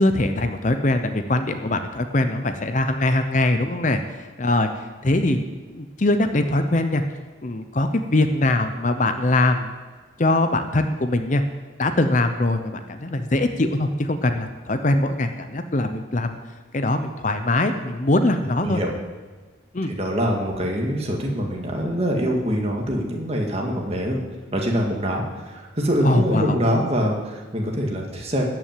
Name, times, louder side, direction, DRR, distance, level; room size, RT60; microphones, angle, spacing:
voice 1, 0.0-4.7 5.0-5.4 5.7-7.0 7.4-9.7 10.2-11.4 11.8-16.4 16.7-18.8 19.7-19.9 26.0-26.6, left 2 dB, 40° left, 8 dB, 0.7 m, -22 dB
voice 2, 19.9-24.2 24.5-28.4, equal, 30° right, 0 dB, 2.0 m, -24 dB
13.5 x 6.0 x 9.0 m, 1.4 s
head